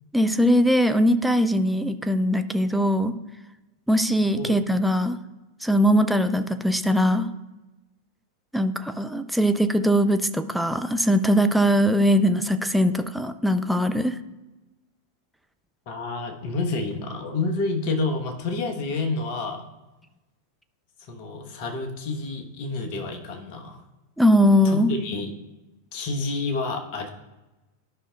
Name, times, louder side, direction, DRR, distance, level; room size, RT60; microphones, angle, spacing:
voice 1, 0.1-3.1 3.9-5.2 5.6-7.3 8.5-14.2 24.2-24.9, equal, ahead, 8 dB, 0.4 m, -21 dB
voice 2, 15.9-19.6 21.0-23.8 24.6-25.3 25.9-27.1, left 3 dB, 45° left, 4 dB, 1.1 m, -29 dB
13.0 x 5.6 x 2.4 m, 1.0 s
figure-of-eight pair, 90°, 0 cm